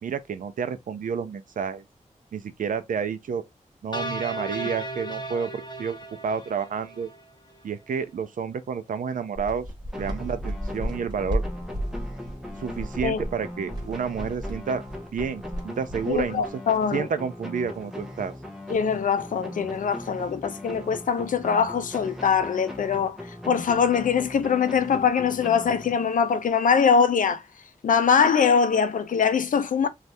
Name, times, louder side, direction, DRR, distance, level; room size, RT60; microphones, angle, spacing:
voice 1, 0.0-1.8 2.3-3.4 3.8-6.0 6.2-7.1 7.6-9.6 10.0-11.4 12.6-14.8 15.1-16.4 16.9-18.3, right 6 dB, 85° right, 0.5 m, -30 dB
sound 1, 3.9-7.2, right 2 dB, 35° left, 0.7 m, -35 dB
sound 2, 9.3-16.5, equal, 30° right, 1.2 m, -34 dB
sound 3, 9.9-26.4, left 1 dB, 5° right, 0.7 m, -39 dB
voice 2, 16.1-17.1 18.7-23.2 23.4-27.4 27.8-29.9, left 6 dB, 80° left, 0.5 m, -22 dB
2.7 x 2.4 x 3.2 m
wide cardioid pair, 110°, 13 cm